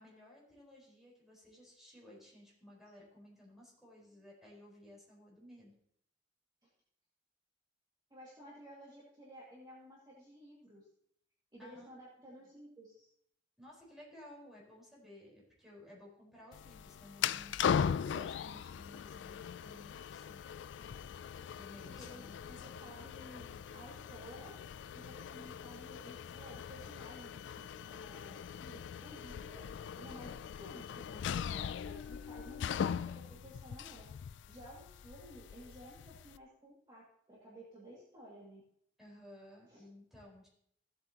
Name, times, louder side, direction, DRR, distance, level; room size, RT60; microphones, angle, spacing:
voice 1, 0.0-5.7 11.6-11.9 12.2-12.5 13.6-17.5 18.1-20.4 21.6-22.4 39.0-40.5, left 1 dB, ahead, -5 dB, 4.4 m, -56 dB
voice 2, 8.1-10.9 11.5-13.1 21.9-24.5 24.9-29.7 30.0-34.0 34.5-38.6 39.7-39.8, equal, 25° right, -6 dB, 2.2 m, -54 dB
sound 1, 16.5-36.4, left 7 dB, 80° left, 0.3 m, -40 dB
16.0 x 7.8 x 2.9 m, 0.70 s
head